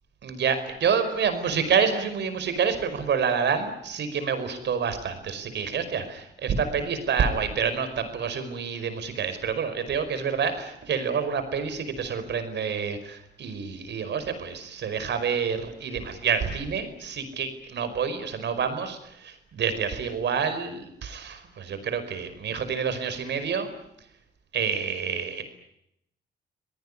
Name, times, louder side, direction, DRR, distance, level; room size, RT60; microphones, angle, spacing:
voice 1, 0.2-23.7 24.5-25.4, right 6 dB, 60° right, 10 dB, 5.2 m, -28 dB
26.5 x 18.5 x 9.9 m, 0.78 s
cardioid pair, 90°, 20 cm